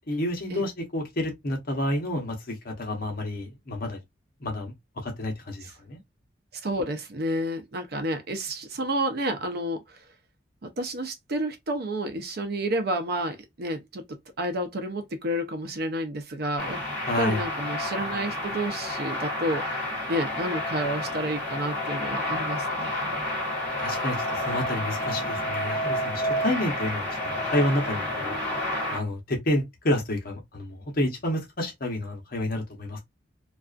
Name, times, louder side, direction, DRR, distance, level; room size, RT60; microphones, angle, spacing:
voice 1, 0.1-4.0 4.4-6.0 17.1-17.5 23.8-28.4 28.9-33.0, left 1 dB, 55° left, 0.8 m, -29 dB
voice 2, 6.6-10.0 10.6-14.1 14.4-16.8 17.2-19.8 20.1-23.1, right 1 dB, 60° right, 0.6 m, -30 dB
sound 1, 16.6-29.0, left 1 dB, 5° left, 1.1 m, -30 dB
2.4 x 2.4 x 2.4 m
head